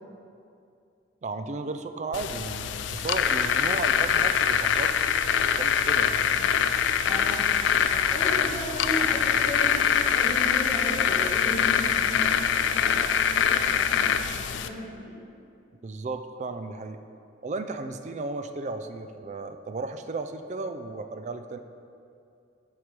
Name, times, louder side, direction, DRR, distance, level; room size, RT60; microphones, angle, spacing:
voice 1, 1.2-4.9 5.3-6.2 15.8-17.0 17.4-21.6, right 3 dB, 40° right, 8 dB, 0.3 m, -34 dB
sound 1, 2.1-14.7, left 7 dB, 90° left, 0.3 m, -24 dB
voice 2, 7.0-15.2, equal, 20° right, -8 dB, 1.9 m, -36 dB
7.4 x 4.8 x 5.2 m, 2.5 s
head